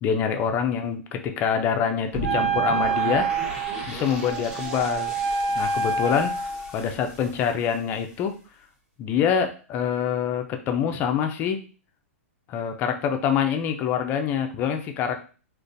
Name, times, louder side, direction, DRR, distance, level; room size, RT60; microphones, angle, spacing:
voice 1, 0.0-3.4 3.9-5.1 5.6-6.4 6.7-8.4 9.0-11.6 12.5-15.3, left 7 dB, 25° left, 6 dB, 0.4 m, -25 dB
sound 1, 2.1-8.2, right 1 dB, 10° right, 0.7 m, -37 dB
Wind instrument woodwind instrument, 2.2-6.8, right 5 dB, 90° right, 0.7 m, -27 dB
3.7 x 2.5 x 2.6 m, 0.37 s
hypercardioid pair, 150°, 8 cm